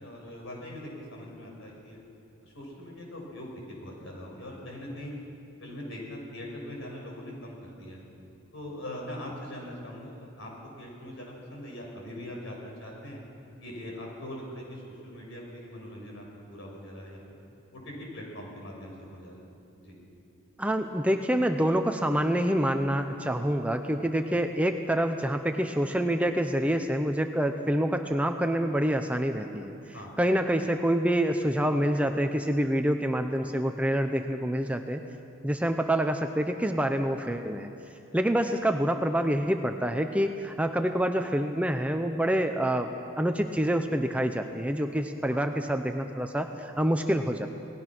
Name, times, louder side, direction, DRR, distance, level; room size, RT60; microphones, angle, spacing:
voice 1, 0.0-2.0 2.4-5.1 5.6-8.0 8.5-10.5 10.8-13.2 13.6-17.4 17.7-19.4 19.8-20.0 29.9-30.1 45.3-45.4, left 1 dB, 60° left, -1 dB, 6.3 m, -41 dB
voice 2, 20.6-29.8 30.2-35.0 35.4-37.7 38.1-47.5, right 1 dB, 5° right, 6 dB, 0.7 m, -27 dB
29.0 x 19.0 x 6.1 m, 2.7 s
head